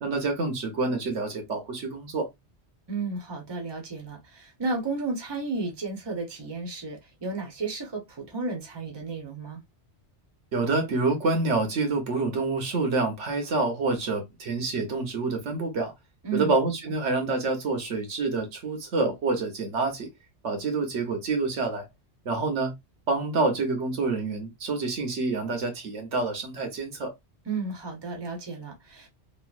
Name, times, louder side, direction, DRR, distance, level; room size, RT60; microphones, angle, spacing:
voice 1, 0.0-2.3 10.5-15.9 16.3-20.1 20.4-21.9 22.2-22.7 23.1-27.1, right 3 dB, 90° right, 1.3 m, -27 dB
voice 2, 2.9-9.6 16.2-16.5 27.5-29.1, right 3 dB, 25° right, 0.9 m, -33 dB
3.0 x 2.6 x 2.4 m
omnidirectional pair, 1.2 m